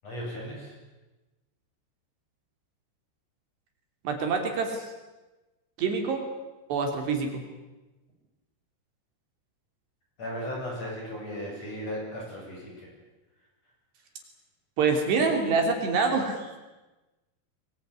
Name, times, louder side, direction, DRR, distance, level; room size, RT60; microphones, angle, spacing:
voice 1, 0.0-0.8 10.2-12.9, equal, 35° left, -1 dB, 9.0 m, -36 dB
voice 2, 4.0-4.9 5.8-6.3 6.7-7.4 14.8-16.6, right 4 dB, 65° right, 4 dB, 4.9 m, -26 dB
23.5 x 21.5 x 9.7 m, 1.1 s
omnidirectional pair, 5.4 m